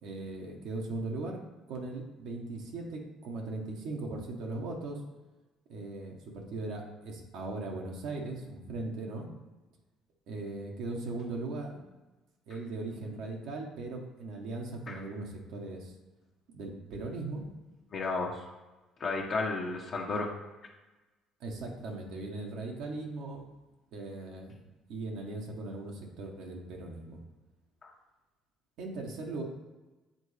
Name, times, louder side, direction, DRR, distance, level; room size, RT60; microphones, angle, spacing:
voice 1, 0.0-1.4 1.7-5.0 5.7-9.3 10.3-11.8 12.5-15.9 16.5-17.4 21.4-23.5 23.9-24.5 24.9-27.2 28.8-29.4, right 2 dB, 70° right, 1 dB, 1.2 m, -38 dB
voice 2, 17.9-18.4 19.0-20.3 27.8-27.9, left 3 dB, 50° left, -1 dB, 1.0 m, -33 dB
7.8 x 3.8 x 3.3 m, 1.1 s
hypercardioid pair, 65°, 0 cm